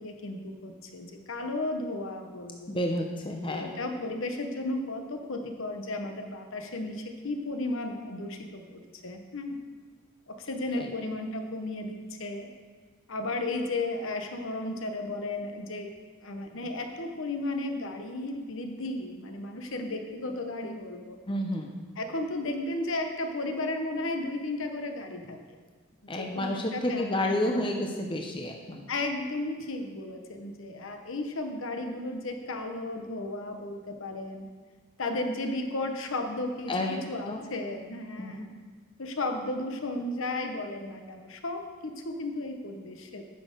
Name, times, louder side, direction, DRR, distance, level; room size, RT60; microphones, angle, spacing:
voice 1, 0.0-2.7 3.5-9.6 10.3-12.5 13.1-15.9 16.2-21.2 22.0-25.6 26.1-27.6 28.9-34.5 35.0-36.7 37.1-38.5 39.0-43.2, left 2 dB, 60° left, 5 dB, 0.9 m, -34 dB
voice 2, 2.7-3.7 10.7-10.9 21.3-21.8 26.1-28.9 36.7-37.5 38.2-38.5, left 1 dB, 20° left, 2 dB, 0.6 m, -31 dB
10.0 x 6.4 x 5.1 m, 1.5 s
head